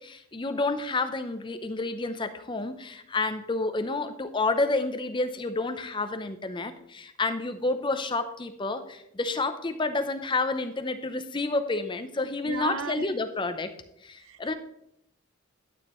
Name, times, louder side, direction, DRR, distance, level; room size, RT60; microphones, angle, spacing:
voice 1, 0.0-13.7 14.0-14.5, left 3 dB, 25° left, 9 dB, 0.6 m, -29 dB
voice 2, 12.4-13.1 14.2-14.5, right 5 dB, 80° right, 13 dB, 0.6 m, -35 dB
12.0 x 8.8 x 3.1 m, 0.78 s
head